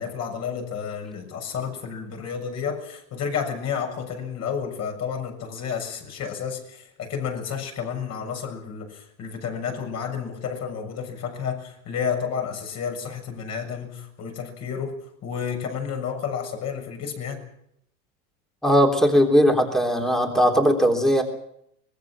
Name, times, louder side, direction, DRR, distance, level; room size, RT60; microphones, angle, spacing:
voice 1, 0.0-15.0 15.2-17.5, left 7 dB, 40° left, 4 dB, 7.1 m, -31 dB
voice 2, 18.6-21.2, equal, ahead, 3 dB, 3.3 m, -19 dB
24.5 x 21.0 x 6.1 m, 0.74 s
supercardioid pair, 135°, 40 cm